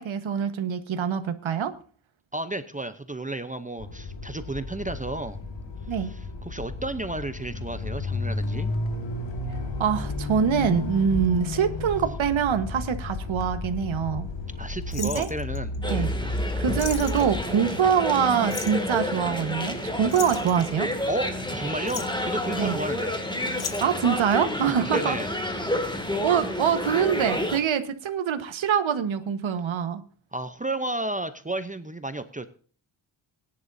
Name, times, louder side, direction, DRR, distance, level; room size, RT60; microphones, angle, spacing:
voice 1, 0.0-1.7 5.9-6.1 9.8-14.3 15.0-15.3 15.8-16.1 16.6-20.9 22.6-22.8 23.8-25.2 26.2-30.0, right 7 dB, 75° right, 9 dB, 1.4 m, -24 dB
voice 2, 2.3-5.4 5.9-8.7 14.6-16.4 21.1-23.2 24.6-25.3 30.3-32.5, right 2 dB, 15° right, 10 dB, 0.7 m, -33 dB
sound 1, 3.8-17.4, left 2 dB, 65° left, 1.9 m, -32 dB
sound 2, 14.9-15.8 16.4-16.5 16.8-17.3 18.5-18.9 20.1-21.2 21.7-22.3 23.5-24.1 25.1-25.5 25.7-25.8, left 8 dB, 90° left, 1.4 m, -36 dB
sound 3, 15.8-27.6, left 1 dB, 10° left, 2.3 m, -30 dB
19.0 x 10.5 x 2.7 m, 0.43 s
wide cardioid pair, 105°, 47 cm